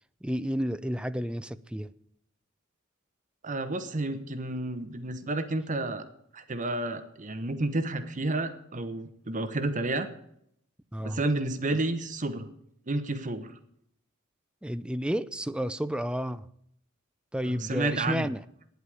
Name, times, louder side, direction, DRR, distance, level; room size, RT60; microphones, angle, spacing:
voice 1, 0.2-1.9 10.9-11.2 14.6-16.4 17.3-18.4, equal, 5° right, 0.4 m, -31 dB
voice 2, 3.4-6.0 6.3-10.1 11.0-12.5 12.9-13.5 17.4-18.3, right 2 dB, 40° right, 1.0 m, -31 dB
9.8 x 8.0 x 8.6 m
head